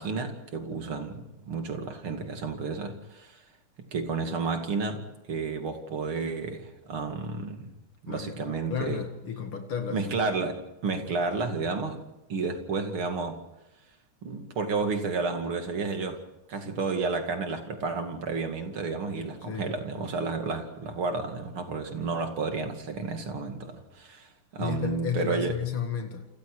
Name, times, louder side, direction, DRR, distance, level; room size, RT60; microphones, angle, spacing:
voice 1, 0.0-3.4 3.8-7.7 8.0-9.0 9.9-12.0 12.3-13.4 14.2-16.2 16.5-25.5, right 4 dB, 85° right, 3.3 m, -31 dB
voice 2, 8.1-10.1 19.4-19.7 24.6-26.3, left 7 dB, 90° left, 2.9 m, -33 dB
29.0 x 26.5 x 4.9 m
omnidirectional pair, 2.3 m